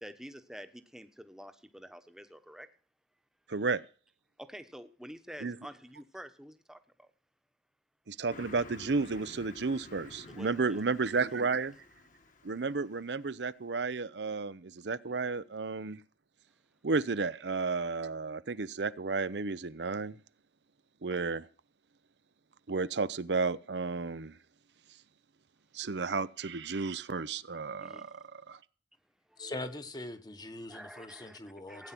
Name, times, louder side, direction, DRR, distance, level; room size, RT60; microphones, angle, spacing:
voice 1, 0.0-2.7 4.4-7.1 10.3-10.8 11.1-11.2 15.1-15.2 27.8-28.1 29.3-29.5 30.7-31.9, equal, 5° right, 9 dB, 1.1 m, -48 dB
voice 2, 3.5-3.8 5.4-5.6 8.1-11.7 12.4-16.0 16.8-20.2 21.0-21.5 22.7-24.3 25.7-28.6, right 4 dB, 70° right, 15 dB, 0.7 m, -32 dB
Car passing by, 8.3-13.3, left 2 dB, 45° left, 1.6 m, -52 dB
voice 3, 29.4-31.9, left 2 dB, 25° left, 10 dB, 1.2 m, -42 dB
16.5 x 9.6 x 6.0 m, 0.39 s
head